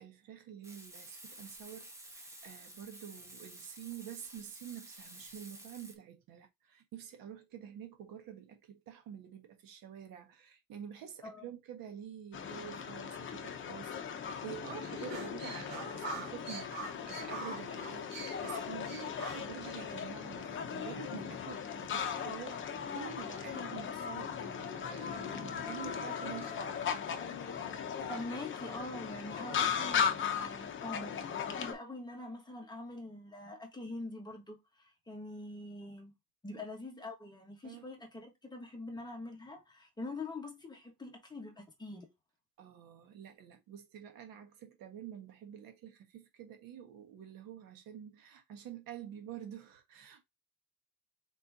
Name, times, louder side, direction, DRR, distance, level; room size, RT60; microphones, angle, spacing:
voice 1, 0.0-26.9 36.5-36.6 37.6-37.9 42.6-50.2, right 9 dB, 75° right, 1.5 m, -48 dB
Frying (food), 0.6-5.9, right 1 dB, 10° right, 1.2 m, -52 dB
sound 1, 12.3-31.7, left 7 dB, 35° left, 0.8 m, -38 dB
sound 2, 14.9-20.0, right 3 dB, 45° right, 2.1 m, -44 dB
voice 2, 28.1-36.1 36.4-42.1, left 2 dB, 10° left, 1.3 m, -44 dB
4.6 x 4.2 x 2.7 m
cardioid pair, 165°, 34 cm